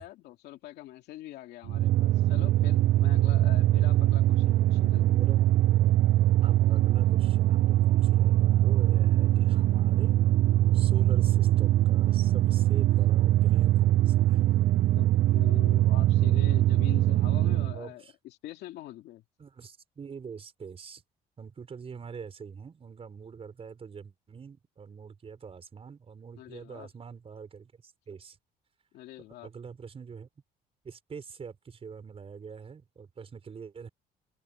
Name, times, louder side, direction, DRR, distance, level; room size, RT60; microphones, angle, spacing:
voice 1, 0.0-5.2 14.9-19.2 26.4-26.9 28.9-29.5, left 14 dB, 80° left, 2.4 m, -44 dB
sound 1, 1.7-17.8, right 14 dB, 60° right, 0.7 m, -22 dB
voice 2, 5.2-5.6 6.4-10.2 10.7-14.5 17.7-18.1 19.4-21.0 21.4-28.4 29.4-30.3 30.8-33.9, right 6 dB, 35° right, 5.1 m, -44 dB
cardioid pair, 110°, 17 cm